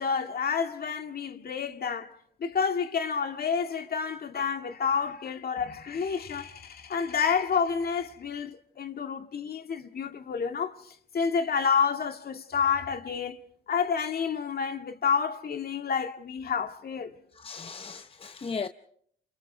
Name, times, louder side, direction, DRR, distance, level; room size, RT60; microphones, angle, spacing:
voice 1, 0.0-2.1 2.4-17.1, left 6 dB, 50° left, 1.9 m, -29 dB
voice 2, 17.4-18.7, left 5 dB, 30° left, 0.8 m, -36 dB
30.0 x 27.5 x 3.4 m
cardioid pair, 90°, 20 cm